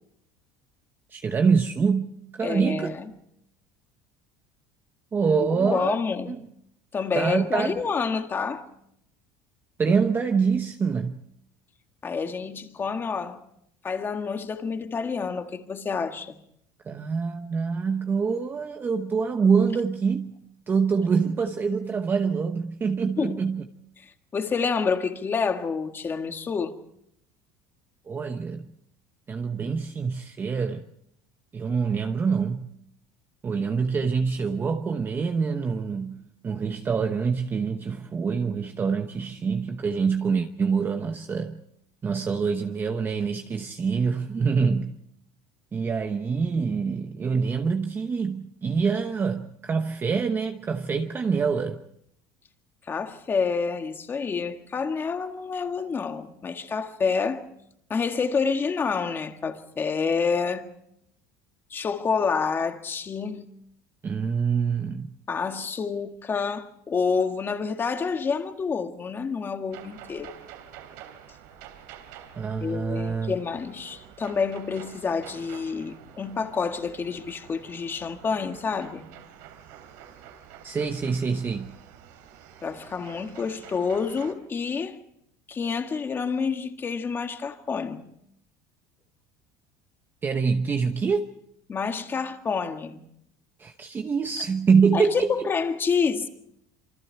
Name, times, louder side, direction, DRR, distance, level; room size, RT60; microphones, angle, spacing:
voice 1, 1.1-3.0 5.1-6.0 6.2-6.4 7.1-7.8 9.8-11.2 16.9-20.4 20.7-23.6 28.1-28.7 29.3-30.9 31.5-32.7 33.4-41.6 42.0-45.0 45.7-51.8 64.0-65.2 72.4-73.4 80.6-81.7 90.2-91.2 93.6-95.5, right 5 dB, 20° right, 1.0 m, -25 dB
voice 2, 2.4-3.1 5.5-6.3 6.9-8.7 12.0-13.4 13.8-16.4 23.2-23.4 24.3-26.8 52.9-57.4 57.9-60.7 61.7-63.4 65.3-70.3 72.6-79.1 82.6-85.0 85.5-88.1 91.7-93.0 94.9-96.3, left 5 dB, 25° left, 1.7 m, -28 dB
sound 1, 69.7-84.3, right 9 dB, 85° right, 3.4 m, -48 dB
27.0 x 24.5 x 4.6 m
cardioid pair, 140°, 10 cm